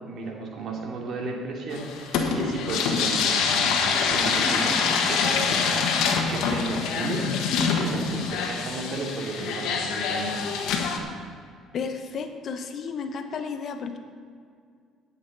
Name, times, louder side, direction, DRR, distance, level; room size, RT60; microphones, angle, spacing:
voice 1, 0.1-3.8 4.1-7.3 7.6-10.4, right 3 dB, 60° right, 0 dB, 2.6 m, -34 dB
sound 1, 1.7-11.0, left 5 dB, 75° left, 1.4 m, -25 dB
voice 2, 11.7-14.0, left 5 dB, 55° left, 7 dB, 1.0 m, -33 dB
17.5 x 7.2 x 4.1 m, 2.1 s
supercardioid pair, 70°, 0 cm